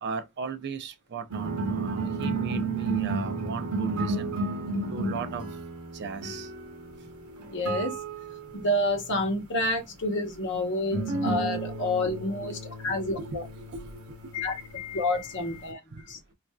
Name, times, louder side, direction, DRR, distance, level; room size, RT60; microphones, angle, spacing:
voice 1, 0.0-4.4 4.9-5.5 5.9-6.5 12.4-12.6 12.8-14.4 15.9-16.0, right 5 dB, 50° right, 0.4 m, -37 dB
sound 1, 1.3-8.6 10.9-14.9, right 3 dB, 85° right, 0.9 m, -32 dB
voice 2, 7.5-7.9 8.5-13.4 14.3-16.2, left 1 dB, 55° left, 0.9 m, -29 dB
3.1 x 2.5 x 2.2 m
head